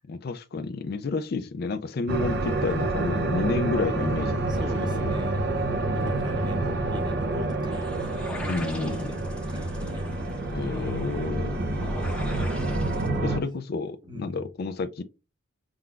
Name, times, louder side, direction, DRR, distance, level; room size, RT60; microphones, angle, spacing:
voice 1, 0.1-5.1 8.5-9.1 10.5-11.6 13.2-15.0, left 4 dB, 50° left, 0.4 m, -30 dB
sound 1, 2.1-13.4, right 2 dB, 55° right, 0.6 m, -28 dB
voice 2, 4.5-5.4 5.9-10.0 11.2-11.7 13.2-13.4 14.1-14.5, equal, 20° right, 0.9 m, -39 dB
sound 2, 7.7-13.1, left 1 dB, 5° left, 0.7 m, -43 dB
5.6 x 3.8 x 2.4 m
head